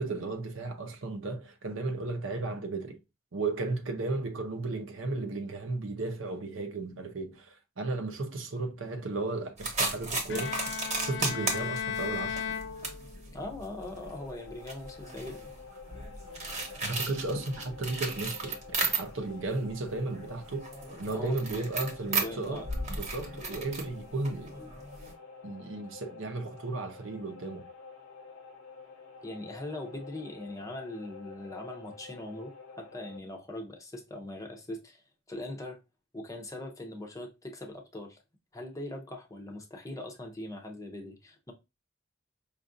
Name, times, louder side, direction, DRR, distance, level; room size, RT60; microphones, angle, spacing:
voice 1, 0.0-3.0 3.3-12.4 16.8-20.7 21.0-24.7 25.4-27.6, right 3 dB, 65° right, 0.7 m, -34 dB
sound 1, 9.6-19.4 19.7-25.1, right 3 dB, 35° right, 1.0 m, -35 dB
Bowed string instrument, 10.3-13.4, left 7 dB, 60° left, 0.4 m, -36 dB
voice 2, 13.3-15.5 20.9-21.6 22.0-22.7 23.1-23.8 29.2-35.0 35.3-35.8 36.1-38.2 38.5-41.5, left 1 dB, 15° left, 0.6 m, -41 dB
sound 2, 13.8-33.2, left 4 dB, 90° left, 0.9 m, -50 dB
5.1 x 2.4 x 2.5 m
head